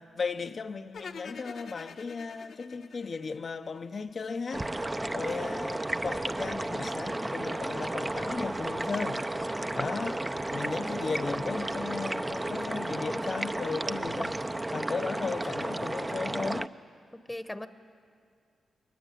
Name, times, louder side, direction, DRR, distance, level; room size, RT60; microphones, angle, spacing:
voice 1, 0.0-4.7 5.1-9.2 9.7-16.7, left 4 dB, 50° left, 0.7 m, -36 dB
sound 1, 0.9-4.1, left 5 dB, 70° left, 1.2 m, -46 dB
sound 2, 4.5-16.7, right 1 dB, 20° right, 0.6 m, -33 dB
voice 2, 5.0-5.6 9.4-9.7 17.1-17.7, left 1 dB, 10° left, 1.0 m, -40 dB
22.0 x 20.0 x 9.2 m
cardioid pair, 65°, 0 cm